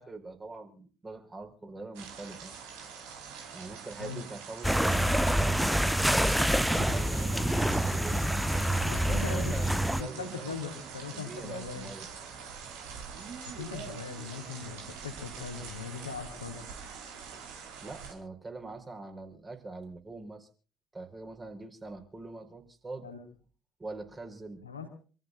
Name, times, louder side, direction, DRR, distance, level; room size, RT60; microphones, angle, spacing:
voice 1, 0.0-2.6 3.5-5.6 6.2-8.2 9.0-10.6 11.1-12.1 17.8-20.5 20.9-23.1 23.8-24.6, right 3 dB, 20° right, 4 dB, 4.8 m, -43 dB
sound 1, 1.9-18.1, right 6 dB, 65° right, 4.5 m, -45 dB
sound 2, 4.6-10.0, equal, ahead, 0.8 m, -27 dB
sound 3, 5.6-16.1, right 5 dB, 50° right, 5.6 m, -45 dB
voice 2, 6.7-7.1 8.9-9.6 10.0-11.9 13.4-16.7 23.0-23.2 24.6-24.9, left 5 dB, 85° left, 3 dB, 3.4 m, -40 dB
28.0 x 15.0 x 2.5 m, 0.39 s
figure-of-eight pair, 55°, 0 cm